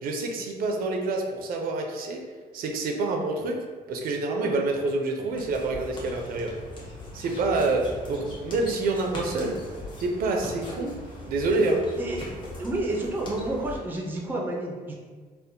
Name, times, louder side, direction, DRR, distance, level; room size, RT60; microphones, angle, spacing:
voice 1, 0.0-2.2 2.5-3.6 3.9-6.5 7.1-9.6 10.0-10.9 11.2-11.8, right 3 dB, 70° right, 2 dB, 0.5 m, -27 dB
sound 1, 5.2-13.8, left 1 dB, 30° left, 0.8 m, -40 dB
voice 2, 11.7-12.3 12.6-14.9, right 1 dB, 10° right, -1 dB, 0.4 m, -30 dB
4.2 x 2.1 x 2.6 m, 1.5 s
cardioid pair, 155°, 16 cm